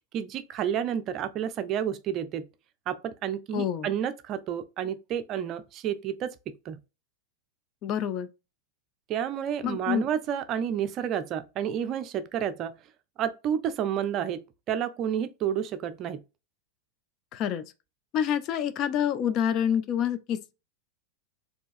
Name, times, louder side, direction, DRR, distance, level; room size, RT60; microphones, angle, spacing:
voice 1, 0.1-2.5 2.9-6.8 9.1-12.8 13.2-16.2, right 9 dB, 35° right, 0.4 m, -30 dB
voice 2, 3.5-3.9 7.8-8.3 9.6-10.0 17.3-17.7 18.1-20.5, left 9 dB, 35° left, 0.4 m, -27 dB
4.5 x 2.8 x 2.5 m
figure-of-eight pair, 90°, 0 cm